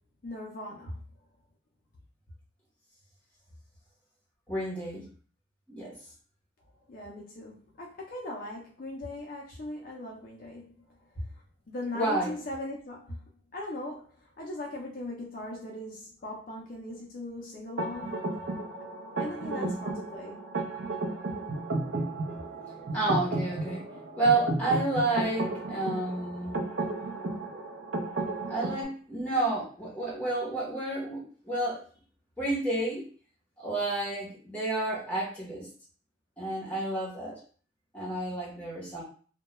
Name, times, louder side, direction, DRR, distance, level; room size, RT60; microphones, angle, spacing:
voice 1, 0.2-1.0 6.9-11.0 11.7-13.2 13.5-18.4 19.2-20.4, left 1 dB, 45° left, -2 dB, 0.4 m, -39 dB
voice 2, 4.5-5.1 5.7-6.0 11.9-12.3 19.5-19.8 22.9-23.8 24.1-26.7 28.5-31.8 32.4-33.1 33.6-35.7 36.4-37.4 37.9-39.0, right 2 dB, 5° left, -5 dB, 0.8 m, -30 dB
sound 1, 17.8-28.8, right 2 dB, 65° right, 0.5 m, -33 dB
2.2 x 2.1 x 2.9 m, 0.43 s
head